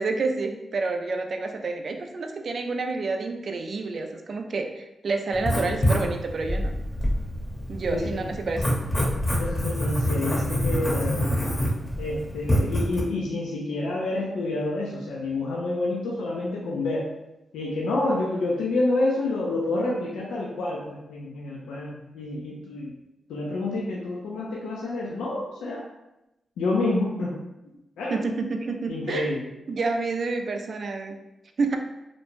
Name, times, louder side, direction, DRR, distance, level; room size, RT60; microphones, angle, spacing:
voice 1, 0.0-6.7 7.7-8.7 28.1-29.4 29.7-31.2 31.6-31.8, right 3 dB, 60° right, 5 dB, 0.3 m, -29 dB
Writing, 5.3-13.0, equal, 25° left, 0.7 m, -26 dB
voice 2, 7.9-8.2 9.4-11.4 12.0-17.1 17.5-22.9 23.3-25.8 26.6-27.4 28.0-28.2 28.9-29.5, left 2 dB, 90° left, -3 dB, 0.3 m, -28 dB
2.5 x 2.1 x 3.0 m, 0.92 s
supercardioid pair, 45°, 0 cm